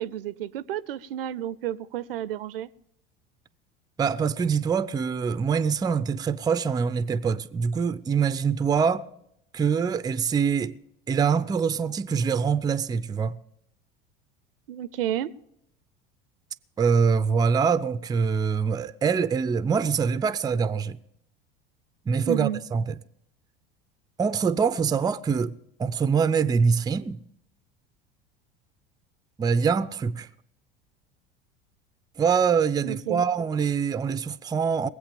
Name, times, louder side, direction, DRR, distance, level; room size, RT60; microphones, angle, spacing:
voice 1, 0.0-2.7 14.7-15.3 22.3-22.6 32.8-33.2, right 11 dB, 70° right, 0.6 m, -31 dB
voice 2, 4.0-9.1 9.5-10.8 11.1-13.4 16.8-21.0 22.1-22.9 24.2-27.2 29.4-30.3 32.2-34.9, right 6 dB, 15° right, 0.5 m, -24 dB
21.0 x 8.0 x 5.1 m
figure-of-eight pair, 75°, 30 cm